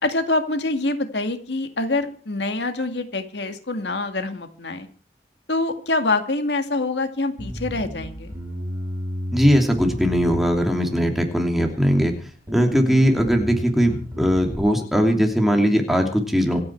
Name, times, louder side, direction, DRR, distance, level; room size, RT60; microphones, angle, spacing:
voice 1, 0.0-4.9 5.5-8.4, left 2 dB, 85° left, 7 dB, 2.1 m, -25 dB
Bass guitar, 7.4-11.0 11.6-12.1 12.5-14.6, equal, 15° right, 6.4 m, -32 dB
voice 2, 9.3-12.1 12.5-16.6, equal, ahead, 2 dB, 2.8 m, -19 dB
26.5 x 9.7 x 4.6 m, 0.40 s
head